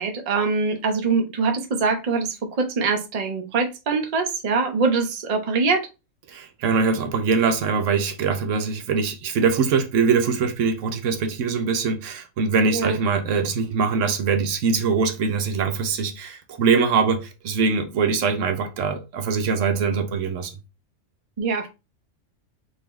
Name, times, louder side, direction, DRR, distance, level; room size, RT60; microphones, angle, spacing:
voice 1, 0.0-5.9 12.7-13.0 21.4-21.7, right 4 dB, 40° right, 0.6 m, -23 dB
voice 2, 6.3-20.5, right 5 dB, 75° right, 1.0 m, -22 dB
3.9 x 2.7 x 3.1 m
omnidirectional pair, 1.3 m